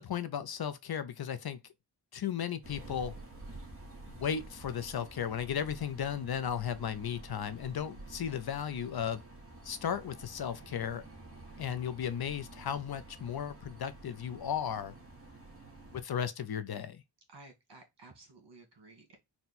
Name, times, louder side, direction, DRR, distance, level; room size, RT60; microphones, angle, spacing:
voice 1, 0.0-1.6 2.1-3.1 4.2-9.2 9.6-11.0 11.6-14.9 15.9-17.0, left 8 dB, 60° left, 0.5 m, -35 dB
sound 1, 2.6-16.0, right 2 dB, 30° right, 1.2 m, -50 dB
voice 2, 17.3-19.2, right 3 dB, 70° right, 1.6 m, -55 dB
4.3 x 2.2 x 4.0 m
wide cardioid pair, 90°, 43 cm